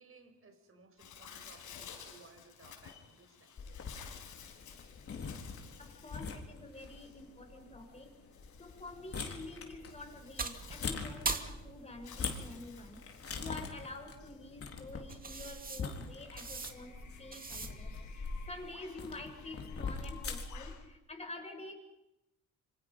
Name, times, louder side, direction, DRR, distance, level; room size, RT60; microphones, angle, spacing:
voice 1, 0.0-3.6, right 4 dB, 45° right, 7 dB, 5.3 m, -60 dB
Bird, 1.0-20.9, left 8 dB, 80° left, 5.3 m, -55 dB
sound 1, 3.6-20.7, left 4 dB, 50° left, 3.9 m, -44 dB
voice 2, 5.8-8.1 8.6-13.0 13.3-21.7, left 2 dB, 20° left, 2 dB, 6.9 m, -48 dB
sound 2, 8.9-18.0, right 4 dB, 30° right, 2.5 m, -44 dB
27.0 x 25.0 x 5.6 m, 0.90 s
cardioid pair, 90°, 30 cm